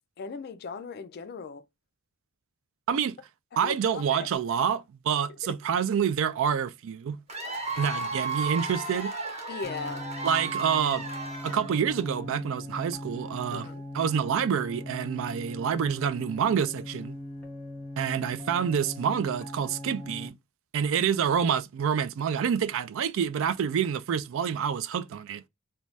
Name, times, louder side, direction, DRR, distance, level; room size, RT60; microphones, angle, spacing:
voice 1, 0.2-1.6 3.6-4.3 5.5-5.6 9.5-10.1 13.5-13.8 19.7-19.8, left 5 dB, 45° left, 0.3 m, -38 dB
voice 2, 3.6-7.2 7.8-9.1 10.2-11.1 11.4-13.7 13.9-17.1 18.0-20.3 20.7-25.5, right 7 dB, 60° right, 0.3 m, -27 dB
Cheering / Applause / Crowd, 7.3-12.0, right 3 dB, 30° right, 0.9 m, -34 dB
sound 1, 9.6-20.3, left 1 dB, 5° left, 0.8 m, -40 dB
2.6 x 2.2 x 3.1 m
head